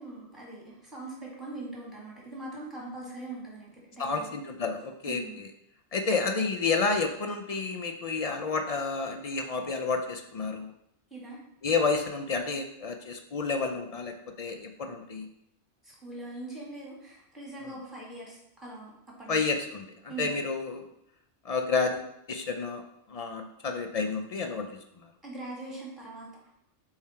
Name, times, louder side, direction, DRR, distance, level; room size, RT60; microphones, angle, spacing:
voice 1, 0.0-4.4 5.1-5.4 11.1-11.4 15.8-18.9 19.2-19.4 20.1-20.4 25.2-26.3, right 2 dB, ahead, -4 dB, 2.0 m, -41 dB
voice 2, 4.0-5.5 5.9-10.7 11.6-15.3 17.6-17.7 19.3-19.8 20.2-20.9 21.4-22.8 23.1-24.7, left 4 dB, 50° left, 5 dB, 0.4 m, -30 dB
7.1 x 3.2 x 4.3 m, 0.78 s
omnidirectional pair, 1.2 m